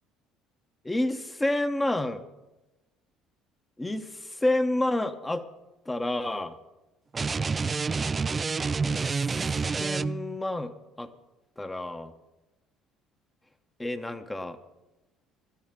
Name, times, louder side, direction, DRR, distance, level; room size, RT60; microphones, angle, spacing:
voice 1, 0.8-2.2 3.8-5.4 5.9-6.5 8.9-10.7 11.0-11.1 11.6-12.1 13.8-14.6, left 1 dB, 15° left, 7 dB, 1.0 m, -29 dB
sound 1, 7.1-10.4, right 4 dB, 30° right, 0.3 m, -28 dB
17.0 x 13.0 x 3.7 m, 1.0 s
hypercardioid pair, 65°, 0 cm